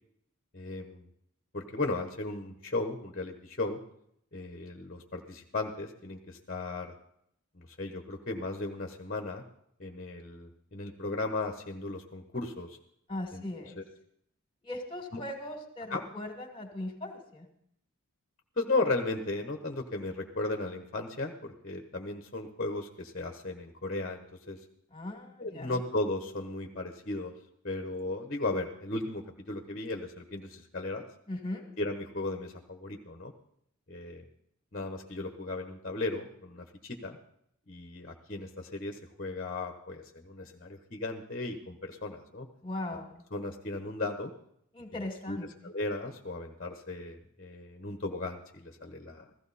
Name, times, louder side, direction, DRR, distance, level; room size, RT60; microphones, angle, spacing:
voice 1, 0.5-1.0 1.5-3.8 4.3-6.9 7.5-9.4 9.8-12.8 13.3-13.4 13.8-13.9 15.1-15.2 15.9-16.0 18.6-24.6 25.4-27.3 27.6-31.1 31.8-33.3 33.9-34.2 34.7-37.2 37.7-42.5 43.3-44.3 45.3-49.3, left 2 dB, 40° left, 5 dB, 1.2 m, -36 dB
voice 2, 13.1-13.8 14.6-17.5 24.9-25.8 31.3-31.7 42.6-43.2 44.7-45.5, left 1 dB, 25° left, 3 dB, 2.4 m, -39 dB
15.5 x 15.0 x 4.2 m, 0.70 s
head